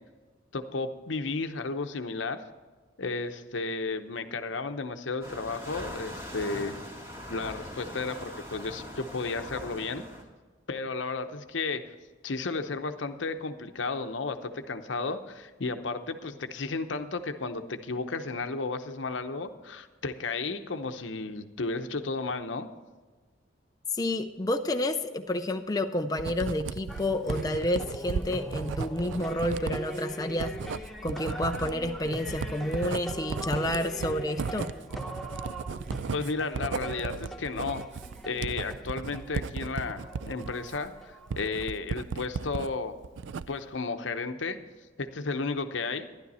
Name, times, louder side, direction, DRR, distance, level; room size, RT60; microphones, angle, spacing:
voice 1, 0.5-2.4 3.0-6.8 7.3-10.0 10.7-11.9 12.2-22.7 36.1-37.8 38.2-43.0 43.5-44.6 45.0-46.1, left 3 dB, 80° left, 8 dB, 0.8 m, -33 dB
sound 1, 5.2-10.2, left 1 dB, 15° right, 2.2 m, -41 dB
voice 2, 23.9-30.5 31.0-34.7, left 1 dB, 20° left, 5 dB, 0.5 m, -30 dB
Writing, 26.2-42.7 43.0-43.7, right 5 dB, 75° right, 0.4 m, -36 dB
sound 2, 26.9-41.4, right 1 dB, ahead, 0.9 m, -42 dB
12.5 x 11.5 x 4.2 m, 1.4 s
head